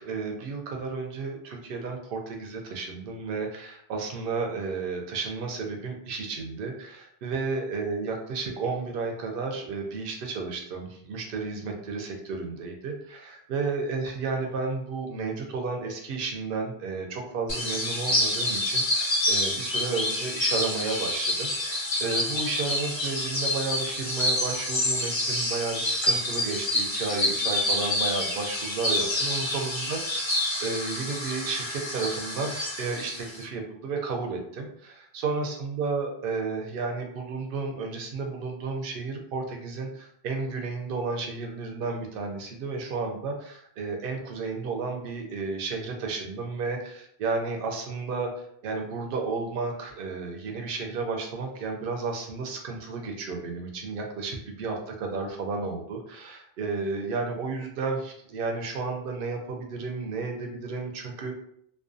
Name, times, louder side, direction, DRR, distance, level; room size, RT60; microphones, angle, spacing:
voice 1, 0.0-30.2 30.6-61.4, right 4 dB, 65° right, 2 dB, 0.7 m, -32 dB
sound 1, 17.5-33.4, left 1 dB, 40° left, 0.4 m, -28 dB
2.4 x 2.1 x 2.5 m, 0.68 s
omnidirectional pair, 1.0 m